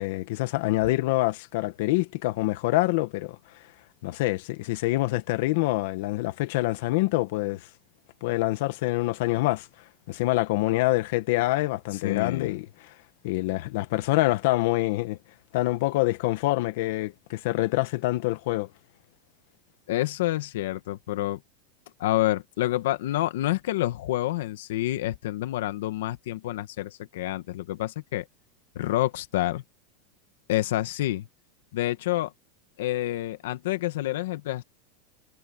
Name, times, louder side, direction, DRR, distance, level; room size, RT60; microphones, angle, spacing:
voice 1, 0.0-3.4 4.0-7.7 8.2-9.7 10.1-12.9 13.2-15.2 15.5-18.7, left 19 dB, 55° left, 1.3 m, -26 dB
voice 2, 12.0-12.6 19.9-21.4 22.0-28.2 28.7-29.6 30.5-31.3 31.7-32.3 32.8-34.6, left 15 dB, 70° left, 1.6 m, -28 dB
supercardioid pair, 180°, 0 cm